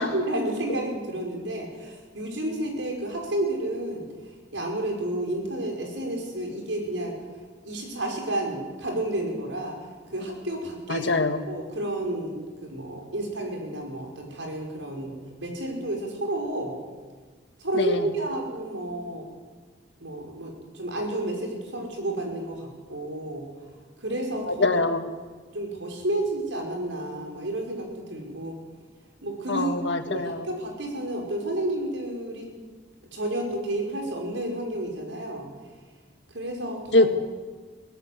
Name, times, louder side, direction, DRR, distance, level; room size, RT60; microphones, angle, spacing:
voice 1, 0.0-4.0 4.5-7.2 7.6-9.8 10.1-11.1 11.5-15.1 15.4-16.7 17.6-19.2 20.0-23.4 24.0-24.8 25.5-28.6 29.2-29.7 30.1-32.5 33.1-35.5 36.3-37.1, right 1 dB, 80° right, 1 dB, 5.7 m, -31 dB
voice 2, 10.9-11.4 17.8-18.0 24.6-25.0 29.5-30.4 36.9-37.1, left 2 dB, 70° left, 7 dB, 1.7 m, -23 dB
22.5 x 17.0 x 8.1 m, 1.5 s
head